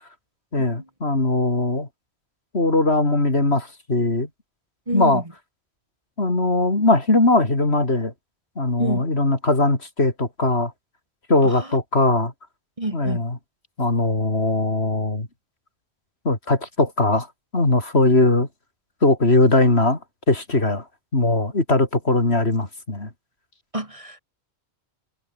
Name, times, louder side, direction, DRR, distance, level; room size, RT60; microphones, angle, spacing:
voice 1, 0.5-1.9 2.5-4.3 4.9-5.2 6.2-8.1 8.6-10.7 11.3-12.3 12.9-13.4 13.8-15.3 16.2-17.3 17.5-18.5 19.0-20.0 20.3-20.8 21.1-23.1, left 2 dB, 65° left, 4.5 m, -20 dB
voice 2, 4.9-5.2 8.8-9.0 11.4-11.7 12.8-13.2 23.7-24.2, right 1 dB, 30° right, 2.7 m, -28 dB
omnidirectional pair, 1.1 m